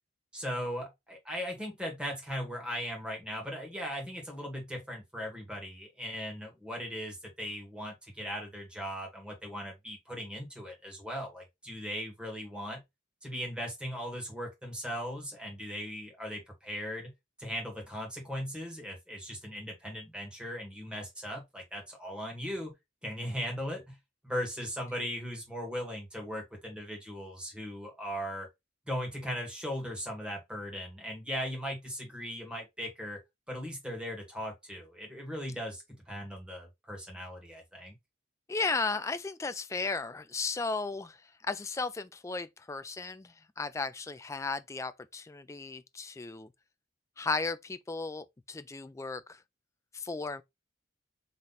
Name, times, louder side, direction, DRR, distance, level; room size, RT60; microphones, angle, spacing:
voice 1, 0.3-12.8 13.2-17.1 17.4-22.7 23.0-24.0 24.2-28.5 28.9-33.2 33.5-37.9, equal, 5° right, 1.8 m, -38 dB
voice 2, 38.5-46.5 47.2-49.4 49.9-50.4, left 3 dB, 15° left, 0.3 m, -35 dB
4.0 x 3.2 x 4.0 m
head